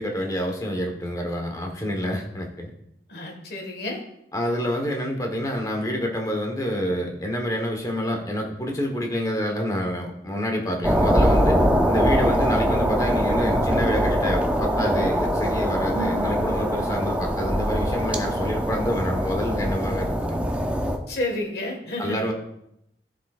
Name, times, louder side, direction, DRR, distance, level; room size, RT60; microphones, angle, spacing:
voice 1, 0.0-2.7 4.3-20.5 22.0-22.3, equal, 20° left, 2 dB, 1.2 m, -27 dB
voice 2, 3.1-4.0 15.9-16.5 21.1-22.2, left 1 dB, 65° left, 1 dB, 1.7 m, -30 dB
sound 1, 10.8-21.0, equal, 10° right, 0.6 m, -23 dB
14.0 x 5.1 x 2.5 m, 0.79 s
head